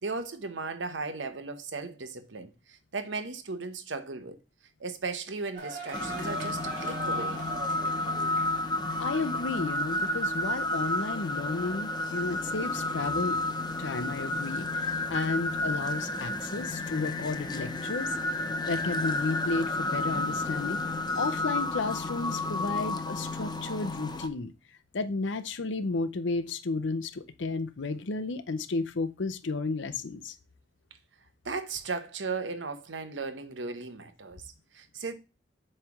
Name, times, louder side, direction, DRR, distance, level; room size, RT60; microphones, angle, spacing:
voice 1, 0.0-4.4 4.8-7.4 31.4-35.1, right 4 dB, 80° right, 0.9 m, -36 dB
sound 1, 5.5-22.4, right 3 dB, 45° right, 3.0 m, -47 dB
sound 2, 5.9-24.3, left 2 dB, 25° left, 0.6 m, -31 dB
voice 2, 9.0-13.4 13.8-18.2 18.7-20.8 21.2-24.5 24.9-30.3, left 3 dB, 80° left, 0.6 m, -32 dB
7.9 x 3.3 x 5.9 m
head